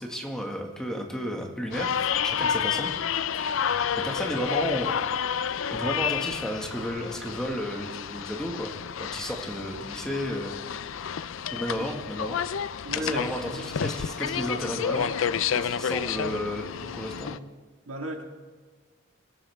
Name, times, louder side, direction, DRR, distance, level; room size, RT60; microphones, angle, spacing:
voice 1, 0.0-2.0 2.2-2.9 3.3-3.5 4.0-4.9 5.7-10.6 11.5-12.4 12.9-15.1 15.5-17.4, equal, 5° left, 1 dB, 1.8 m, -33 dB
sound 1, 1.7-17.4, left 7 dB, 80° left, 0.5 m, -30 dB
voice 2, 12.8-13.7 17.9-18.2, right 1 dB, 90° right, 3 dB, 1.9 m, -36 dB
24.0 x 13.0 x 3.6 m, 1.5 s
head